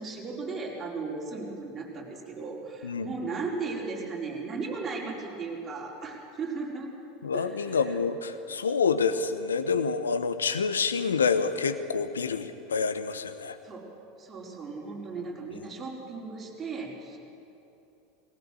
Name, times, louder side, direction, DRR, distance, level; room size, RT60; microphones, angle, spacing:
voice 1, 0.0-6.9 7.3-7.9 13.6-13.9 14.2-17.2, right 4 dB, 25° right, -3 dB, 4.8 m, -36 dB
voice 2, 7.2-13.6, left 5 dB, 80° left, 10 dB, 1.0 m, -27 dB
19.0 x 17.5 x 7.7 m, 2.8 s
figure-of-eight pair, 80°, 0 cm